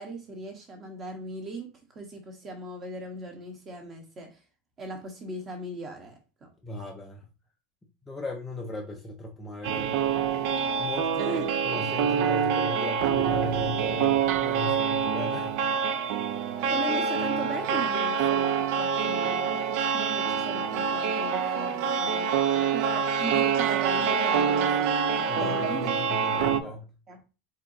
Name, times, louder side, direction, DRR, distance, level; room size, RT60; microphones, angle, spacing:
voice 1, 0.0-4.4 4.8-6.5 11.2-11.4 16.7-22.4 22.7-25.9 26.3-26.7 27.1-27.2, right 2 dB, 20° right, 0.9 m, -38 dB
voice 2, 6.6-7.3 8.1-10.0 10.8-15.6 25.3-26.9, left 2 dB, 10° left, 0.5 m, -37 dB
sound 1, 9.6-26.6, right 7 dB, 45° right, 0.3 m, -26 dB
4.3 x 3.9 x 2.6 m
supercardioid pair, 180°, 0 cm